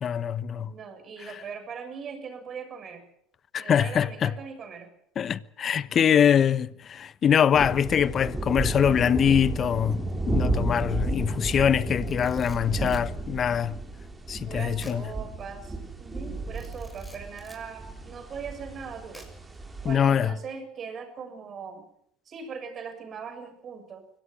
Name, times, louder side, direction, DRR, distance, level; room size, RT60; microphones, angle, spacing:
voice 1, 0.0-0.7 1.2-1.3 3.5-4.3 5.2-13.8 14.3-15.1 19.8-20.3, left 8 dB, 40° left, 1.1 m, -23 dB
voice 2, 0.6-3.0 3.6-4.9 11.2-11.9 14.5-19.3 19.8-21.8 22.3-24.0, right 6 dB, 40° right, 7.0 m, -40 dB
sound 1, 7.5-20.0, right 3 dB, 15° right, 5.5 m, -33 dB
sound 2, 8.2-13.9, left 4 dB, 20° left, 1.9 m, -41 dB
Camera, 11.9-13.1 14.8-15.0 15.4-15.5 16.5-17.7 19.1-19.6, left 1 dB, 5° left, 7.1 m, -51 dB
24.0 x 18.0 x 7.7 m
hypercardioid pair, 75°, 0 cm